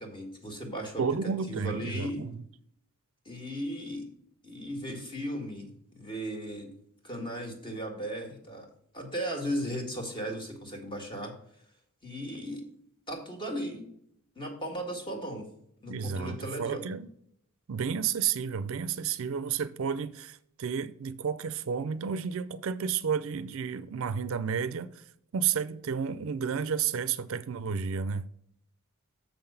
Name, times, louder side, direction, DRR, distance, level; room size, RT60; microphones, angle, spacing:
voice 1, 0.0-1.0 1.5-2.2 3.3-4.1 4.4-6.7 7.0-8.7 8.9-11.3 12.0-12.7 13.1-13.9 14.4-15.5 15.8-16.9, equal, 20° left, 1.8 m, -36 dB
voice 2, 1.0-2.3 15.9-17.1 17.7-25.0 25.3-28.3, right 6 dB, 65° right, 0.4 m, -31 dB
7.0 x 5.8 x 5.6 m
head